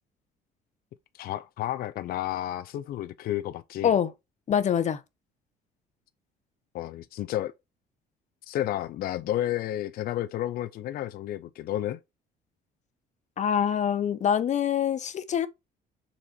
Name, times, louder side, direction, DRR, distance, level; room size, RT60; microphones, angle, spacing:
voice 1, 1.2-3.9 6.7-7.5 8.5-12.0, left 13 dB, 65° left, 0.5 m, -31 dB
voice 2, 4.5-5.0 13.4-15.5, left 8 dB, 45° left, 0.9 m, -25 dB
6.8 x 4.3 x 4.4 m
cardioid pair, 110°, 17 cm